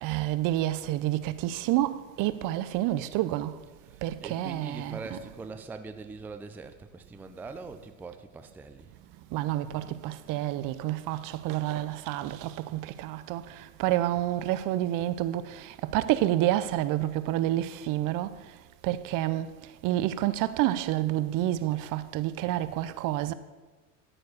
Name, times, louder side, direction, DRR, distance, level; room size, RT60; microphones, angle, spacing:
voice 1, 0.0-3.5 4.0-5.2 9.3-18.3 18.8-19.5 19.8-23.3, right 14 dB, 50° right, 0.6 m, -29 dB
voice 2, 3.8-8.9, right 3 dB, 5° right, 0.4 m, -42 dB
13.0 x 4.6 x 6.4 m
supercardioid pair, 110°, 40 cm